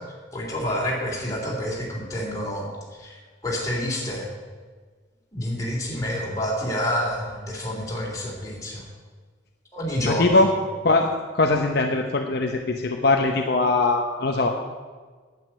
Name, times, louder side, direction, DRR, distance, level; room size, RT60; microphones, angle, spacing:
voice 1, 0.3-2.7 3.0-4.3 5.3-8.8 9.7-10.4, equal, 15° left, -4 dB, 3.5 m, -28 dB
voice 2, 10.0-10.5 10.8-11.1 11.3-14.5, left 3 dB, 55° left, 2 dB, 0.9 m, -21 dB
9.4 x 8.8 x 8.9 m, 1.5 s
head